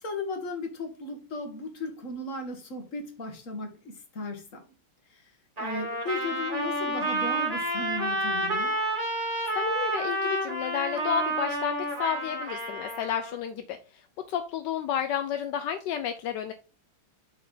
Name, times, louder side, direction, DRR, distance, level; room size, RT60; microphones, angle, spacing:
voice 1, 0.0-4.7 5.0-8.7, left 2 dB, 40° left, 1.6 m, -36 dB
Trumpet, 5.6-13.4, right 1 dB, 15° right, 2.4 m, -30 dB
voice 2, 9.2-13.8 14.3-16.5, left 9 dB, 75° left, 1.0 m, -31 dB
7.4 x 4.4 x 3.9 m
omnidirectional pair, 2.3 m